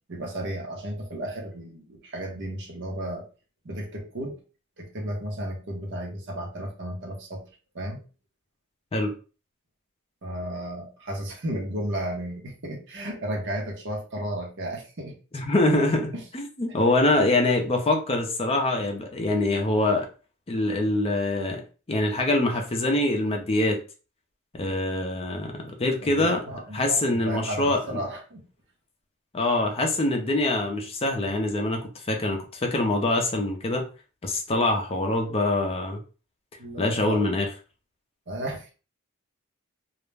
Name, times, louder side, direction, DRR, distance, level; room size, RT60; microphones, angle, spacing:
voice 1, 0.1-3.2 3.6-4.4 4.8-7.4 7.7-8.0 10.2-15.2 16.1-16.2 25.8-28.4 36.6-37.4 38.3-38.7, right 1 dB, 55° right, 1 dB, 0.8 m, -34 dB
voice 2, 15.3-20.1 20.5-21.6 21.9-23.8 24.5-26.4 26.7-28.0 29.3-33.8 34.2-36.0 36.8-37.5, left 2 dB, 25° left, 2 dB, 0.5 m, -24 dB
2.4 x 2.1 x 3.2 m, 0.35 s
head